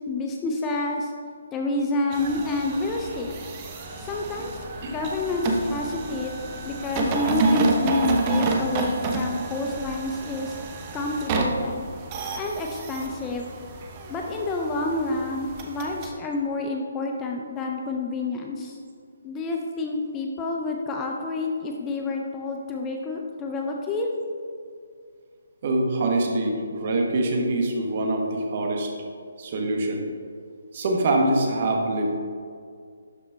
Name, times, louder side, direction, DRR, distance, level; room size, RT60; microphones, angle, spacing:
voice 1, 0.1-1.1 1.5-3.4 4.0-6.3 6.6-10.6 10.9-11.9 12.4-13.5 14.1-18.8 19.2-24.1, left 2 dB, 15° left, 1 dB, 0.4 m, -28 dB
sound 1, 2.1-16.1, right 3 dB, 25° right, 0.7 m, -29 dB
voice 2, 25.6-28.9 29.4-30.1 30.7-32.2, right 2 dB, 40° right, 1 dB, 1.1 m, -24 dB
11.5 x 4.1 x 3.4 m, 2.2 s
hypercardioid pair, 165°, 0 cm